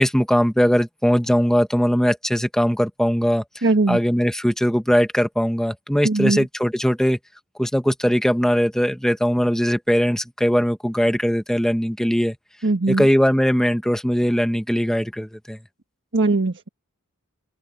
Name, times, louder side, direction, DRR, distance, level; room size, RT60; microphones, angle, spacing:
voice 1, 0.0-7.2 7.6-12.4 12.9-15.6, equal, ahead, 1.4 m, -20 dB
voice 2, 3.6-4.0 6.0-6.4 12.6-13.0 16.1-16.7, right 2 dB, 55° right, 1.5 m, -20 dB
open air
head